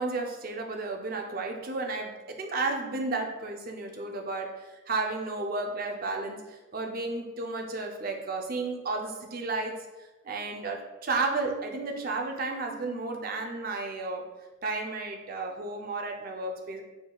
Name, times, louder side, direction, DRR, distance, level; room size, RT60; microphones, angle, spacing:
voice 1, 0.0-14.3 14.6-16.8, right 3 dB, 45° right, 3 dB, 0.5 m, -33 dB
4.9 x 3.9 x 2.3 m, 1.1 s
head